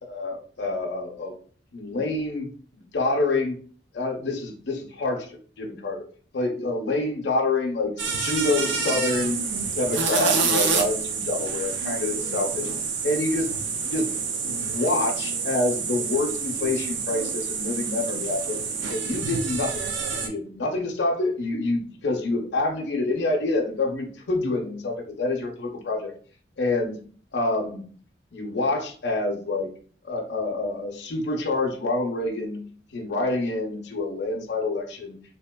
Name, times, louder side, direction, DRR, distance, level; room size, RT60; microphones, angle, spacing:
voice 1, 0.0-1.3 1.7-3.6 3.9-6.1 6.3-9.4 9.7-12.7 13.0-13.5 13.8-14.1 14.4-18.6 18.9-19.8 20.2-26.1 26.6-27.0 27.3-27.9 28.3-29.7 30.0-32.7 32.9-35.2, left 2 dB, 70° left, 0 dB, 0.6 m, -27 dB
sound 1, 8.0-20.3, right 5 dB, 85° right, 0.5 m, -28 dB
3.2 x 2.8 x 2.2 m, 0.43 s
head